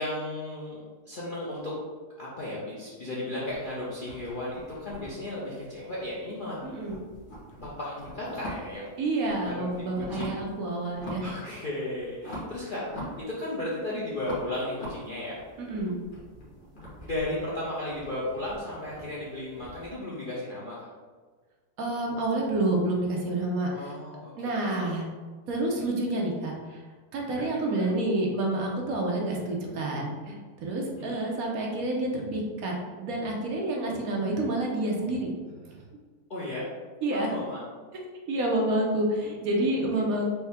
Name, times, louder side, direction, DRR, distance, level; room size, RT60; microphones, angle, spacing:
voice 1, 0.0-1.8 2.2-6.6 7.6-8.9 9.4-9.7 9.9-10.4 11.2-15.4 17.0-20.8 23.7-24.9 27.3-27.9 31.0-31.3 36.3-36.7 37.1-37.6, left 1 dB, 50° left, -7 dB, 0.6 m, -35 dB
sound 1, 3.4-6.3 6.6-8.9 9.2-10.5 10.9-11.4 11.7-13.7 14.2-19.9, equal, 35° left, 1.3 m, -43 dB
voice 2, 6.6-7.0 9.0-11.2 15.6-16.0 21.8-23.9 24.4-25.0 25.5-26.8 27.1-32.7 33.0-35.3 35.6-35.8 37.0-37.3 38.3-40.3, right 2 dB, 70° right, -1 dB, 1.1 m, -28 dB
4.4 x 2.7 x 3.4 m, 1.4 s
omnidirectional pair, 1.7 m